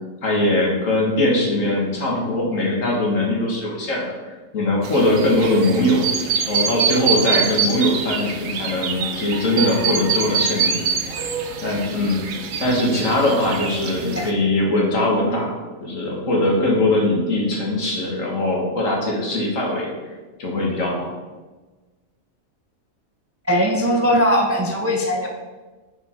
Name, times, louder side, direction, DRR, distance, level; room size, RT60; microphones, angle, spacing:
voice 1, 0.2-4.0 4.5-6.1 6.5-10.8 11.6-12.2 12.6-15.5 15.8-19.9 20.4-21.1, left 1 dB, 70° left, -2 dB, 2.0 m, -21 dB
sound 1, 4.8-14.3, right 6 dB, 75° right, 1.1 m, -25 dB
voice 2, 23.5-25.3, equal, 20° right, 1 dB, 0.3 m, -19 dB
6.4 x 5.0 x 4.5 m, 1.3 s
omnidirectional pair, 1.4 m